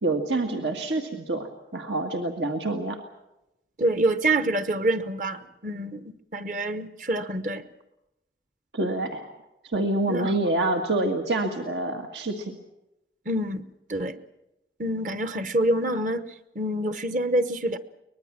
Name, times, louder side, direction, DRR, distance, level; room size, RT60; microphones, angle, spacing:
voice 1, 0.0-3.0 8.7-9.3 9.6-12.6, right 2 dB, 85° right, 3 dB, 1.8 m, -27 dB
voice 2, 3.8-7.7 10.1-10.3 13.3-13.6 13.9-14.2 14.8-16.2 16.5-17.8, right 1 dB, 45° right, 11 dB, 1.0 m, -26 dB
23.5 x 20.0 x 7.4 m, 0.91 s
head